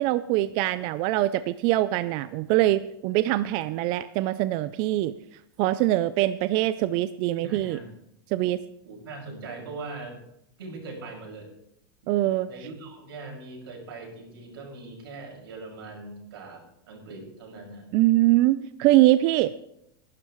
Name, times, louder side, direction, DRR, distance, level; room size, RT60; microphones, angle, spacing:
voice 1, 0.0-5.1 5.6-7.8 8.3-8.6 12.1-12.5 17.9-19.5, right 15 dB, 40° right, 14 dB, 0.4 m, -23 dB
voice 2, 7.3-7.9 8.8-10.2 10.6-11.5 12.0-12.1 12.5-17.9, right 3 dB, 80° right, 1 dB, 5.9 m, -41 dB
20.0 x 12.0 x 3.1 m, 0.78 s
supercardioid pair, 155°, 12 cm